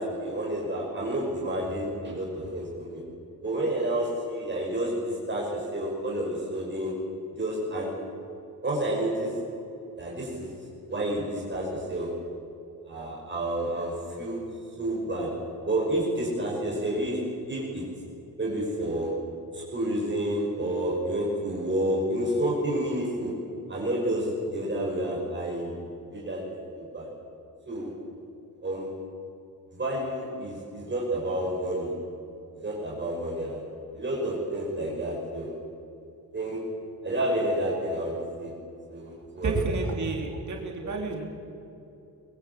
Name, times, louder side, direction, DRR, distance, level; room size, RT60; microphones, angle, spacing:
voice 1, 0.0-3.0 3.4-6.9 7.4-7.9 8.6-9.4 10.0-10.5 10.9-12.1 12.9-14.4 14.8-15.3 15.7-17.2 17.5-17.8 18.4-19.1 19.5-23.3 23.7-25.8 26.1-27.1 27.7-27.9 28.6-28.9 29.7-31.9 32.5-33.6 33.9-35.5 36.3-36.6 37.0-38.5 38.9-39.6 40.8-40.9, right 1 dB, 30° right, -4 dB, 5.7 m, -30 dB
voice 2, 39.4-41.2, right 3 dB, 50° right, 1 dB, 3.3 m, -29 dB
24.0 x 22.5 x 8.3 m, 2.9 s
wide cardioid pair, 170°, 37 cm